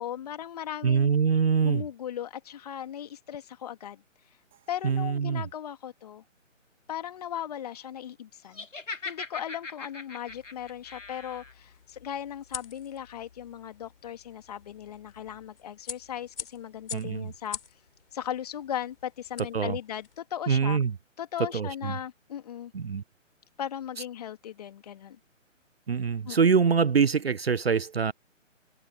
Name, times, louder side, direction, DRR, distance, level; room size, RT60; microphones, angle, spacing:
voice 1, 0.0-1.1 1.6-4.0 4.7-6.2 6.9-8.7 9.0-17.6 18.1-20.8 21.2-22.7 23.6-25.2 26.2-26.5, left 10 dB, 30° left, 2.5 m, -37 dB
voice 2, 0.8-1.8 4.8-5.4 16.9-17.3 19.5-19.8 20.5-20.9 21.5-21.9 22.7-23.0 25.9-28.1, right 6 dB, 50° right, 0.7 m, -24 dB
Crash cymbal, 4.5-6.4, right 11 dB, ahead, 0.6 m, -70 dB
Laughter, 8.5-11.5, left 3 dB, 65° left, 2.5 m, -40 dB
sound 1, 10.3-20.2, left 6 dB, 45° left, 5.7 m, -46 dB
figure-of-eight pair, 140°, 39 cm